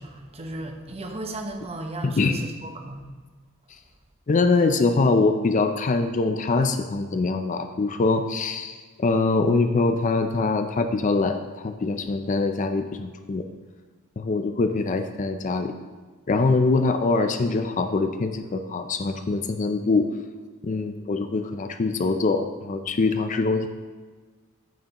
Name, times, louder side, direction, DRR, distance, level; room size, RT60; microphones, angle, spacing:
voice 1, 0.0-3.1, right 1 dB, 30° right, 3 dB, 0.9 m, -35 dB
voice 2, 2.0-2.4 4.3-11.4 11.6-13.4 14.2-15.7 16.3-20.1 20.6-23.7, left 3 dB, 35° left, 7 dB, 0.4 m, -23 dB
9.1 x 8.9 x 2.9 m, 1.4 s
head